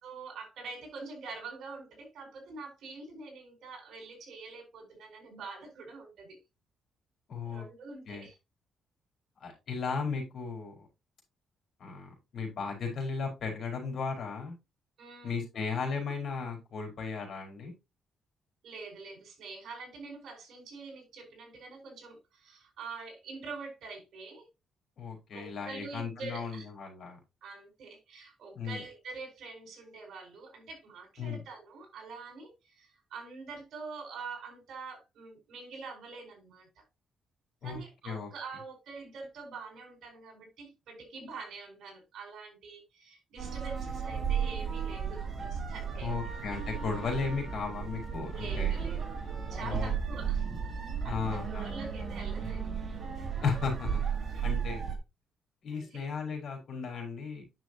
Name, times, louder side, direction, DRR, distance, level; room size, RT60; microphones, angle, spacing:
voice 1, 0.0-6.4 7.4-8.4 15.0-15.4 18.6-24.5 25.3-26.6 27.4-36.7 37.6-46.1 48.3-49.0 49.5-50.5 51.0-52.7 54.2-54.4 55.7-56.0, right 4 dB, 70° right, 4.6 m, -45 dB
voice 2, 7.3-7.6 8.1-8.3 9.4-10.9 11.8-14.5 15.2-17.7 25.0-27.2 28.5-28.8 31.2-31.4 37.6-37.8 38.0-38.3 46.0-48.8 49.6-49.9 51.0-51.7 53.4-54.0 54.4-54.9 55.6-57.4, left 5 dB, 55° left, 4.8 m, -35 dB
sound 1, 43.4-55.0, right 7 dB, 35° right, 2.4 m, -34 dB
9.8 x 6.4 x 3.0 m
cardioid pair, 135°, 0 cm